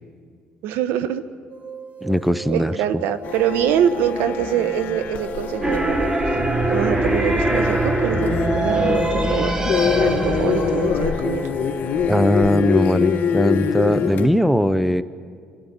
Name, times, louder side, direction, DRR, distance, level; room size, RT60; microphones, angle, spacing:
voice 1, 0.6-1.2 2.5-6.1 6.7-9.6 10.0-11.5, right 9 dB, 80° right, 12 dB, 1.2 m, -24 dB
sound 1, 1.5-13.2, right 7 dB, 40° right, 2.5 m, -37 dB
voice 2, 2.0-2.7 12.1-15.0, equal, ahead, 14 dB, 0.8 m, -19 dB
sound 2, 3.2-14.3, left 7 dB, 55° left, 1.8 m, -25 dB
sound 3, 5.6-12.4, right 1 dB, 20° right, 1.7 m, -23 dB
28.0 x 14.0 x 9.9 m, 2.1 s
cardioid pair, 100°, 3 cm